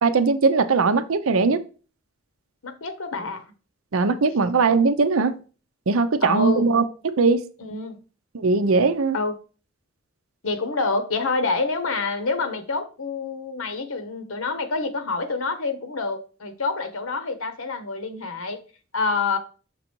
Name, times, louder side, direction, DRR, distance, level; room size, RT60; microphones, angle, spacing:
voice 1, 0.0-1.6 3.9-5.4 5.9-7.4 8.3-9.2, right 4 dB, 85° right, 0.6 m, -20 dB
voice 2, 2.6-3.4 6.2-6.7 7.6-8.0 9.1-9.3 10.4-18.6 18.9-19.4, left 3 dB, 85° left, 1.0 m, -27 dB
6.1 x 3.9 x 4.5 m
head